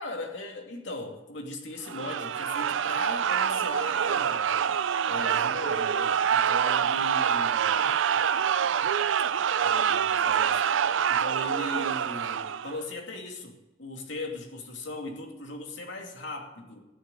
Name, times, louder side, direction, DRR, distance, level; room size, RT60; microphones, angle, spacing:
voice 1, 0.0-4.7 5.1-8.0 9.6-10.6 11.1-16.9, left 2 dB, 75° left, 2 dB, 2.6 m, -39 dB
sound 1, 1.9-12.8, right 8 dB, 80° right, 0.4 m, -26 dB
16.5 x 6.5 x 9.8 m, 1.0 s
head